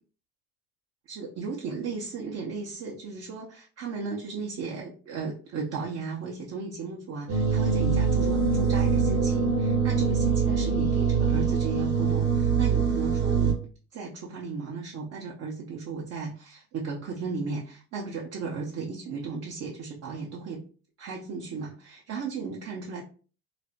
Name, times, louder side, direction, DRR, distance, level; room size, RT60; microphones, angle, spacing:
voice 1, 1.1-13.5 13.9-20.7 21.0-23.0, right 4 dB, 35° right, -2 dB, 0.6 m, -35 dB
sound 1, 7.3-13.5, right 5 dB, 85° right, 0.9 m, -24 dB
3.2 x 2.0 x 2.6 m, 0.38 s
hypercardioid pair, 85°, 44 cm